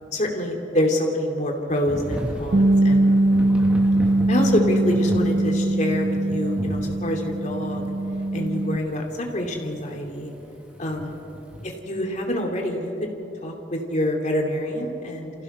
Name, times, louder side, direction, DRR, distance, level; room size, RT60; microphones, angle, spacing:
voice 1, 0.1-3.1 4.3-7.9 8.3-10.3 10.8-11.2 11.8-13.1 13.4-15.3, left 1 dB, 40° left, 1 dB, 2.8 m, -26 dB
Thunder / Rain, 1.9-11.7, equal, 5° right, 2.1 m, -35 dB
Bass guitar, 2.5-8.8, right 1 dB, 45° right, 0.4 m, -21 dB
29.0 x 15.5 x 6.1 m, 3.0 s
head